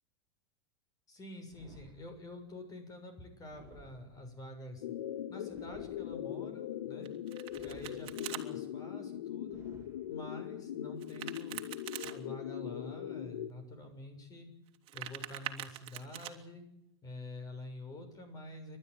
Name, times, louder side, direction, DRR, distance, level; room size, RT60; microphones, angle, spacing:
voice 1, 1.1-4.9 5.3-7.1 7.6-9.6 10.1-11.7 12.0-14.5 14.9-16.6 17.0-18.8, left 1 dB, 25° left, 7 dB, 7.0 m, -48 dB
sound 1, 1.5-2.5 3.5-4.5 5.5-6.5 7.5-8.5 9.5-10.5, right 3 dB, 20° right, 3.0 m, -58 dB
sound 2, 4.8-13.5, left 11 dB, 85° left, 1.3 m, -41 dB
Domestic sounds home sounds, 7.0-8.4 11.0-12.1 14.7-16.3, right 13 dB, 40° right, 2.7 m, -43 dB
29.5 x 12.5 x 9.5 m, 0.83 s
hypercardioid pair, 115°, 14 cm